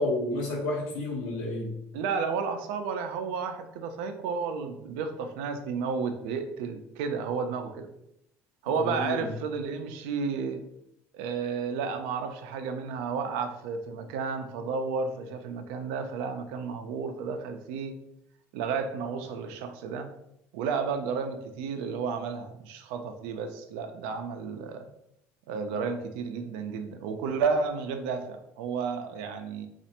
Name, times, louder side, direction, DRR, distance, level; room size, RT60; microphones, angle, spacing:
voice 1, 0.0-1.7 8.8-9.2, left 2 dB, 80° left, -1 dB, 1.0 m, -30 dB
voice 2, 1.9-7.9 8.6-10.6 11.1-17.9 18.5-20.1 20.5-24.9 25.5-29.7, right 5 dB, 90° right, 7 dB, 0.4 m, -32 dB
3.2 x 2.4 x 2.8 m, 0.80 s
cardioid pair, 115°, 6 cm